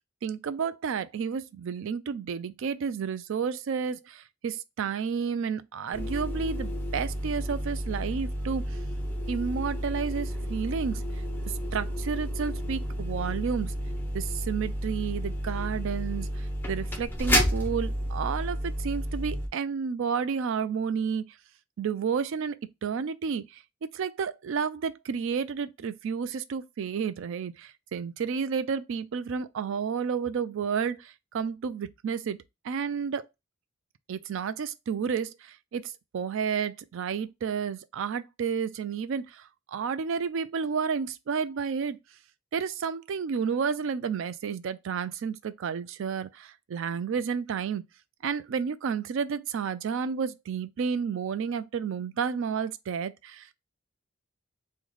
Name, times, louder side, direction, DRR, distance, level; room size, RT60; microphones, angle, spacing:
voice 1, 0.2-8.8 9.3-11.0 11.7-13.7 14.1-21.3 21.8-23.6 23.9-32.4 32.6-33.2 34.1-42.0 42.5-47.8 48.2-53.5, right 6 dB, 65° right, 0.4 m, -31 dB
sound 1, 5.9-19.5, equal, 10° left, 0.6 m, -31 dB
3.1 x 2.2 x 3.8 m
head